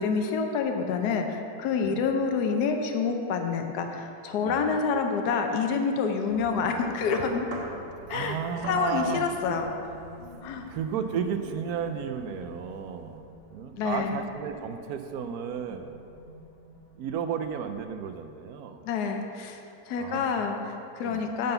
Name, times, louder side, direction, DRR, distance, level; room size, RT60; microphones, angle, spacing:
voice 1, 0.0-7.5 8.1-8.4 8.7-9.6 10.4-10.7 13.8-14.2 18.8-19.6 19.9-21.5, left 5 dB, 70° left, 4 dB, 1.3 m, -27 dB
voice 2, 1.8-2.2 4.4-4.8 8.1-9.6 10.7-13.2 13.5-15.9 17.0-18.8 20.0-20.6 21.0-21.3, right 7 dB, 70° right, 8 dB, 1.0 m, -33 dB
sound 1, 6.2-13.2, right 1 dB, 40° right, 1.3 m, -45 dB
sound 2, 7.1-18.0, left 2 dB, 30° left, 1.2 m, -48 dB
10.5 x 3.9 x 6.6 m, 2.6 s
omnidirectional pair, 1.8 m